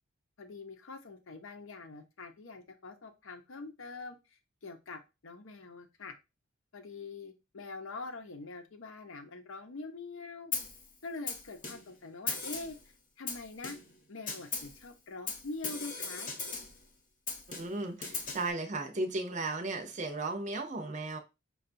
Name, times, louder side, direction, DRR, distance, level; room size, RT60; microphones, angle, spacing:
voice 1, 0.4-6.1 6.7-10.5 11.0-12.8 13.2-13.8 14.1-16.3, left 3 dB, 70° left, 0.7 m, -44 dB
Snare drum, 10.5-10.8 11.3-12.0 12.3-12.8 13.3-14.0 14.3-14.8 15.3-16.8 17.3-18.5, left 4 dB, 40° left, 0.9 m, -38 dB
voice 2, 17.6-21.2, right 2 dB, 35° right, 0.6 m, -35 dB
5.5 x 2.3 x 2.5 m
head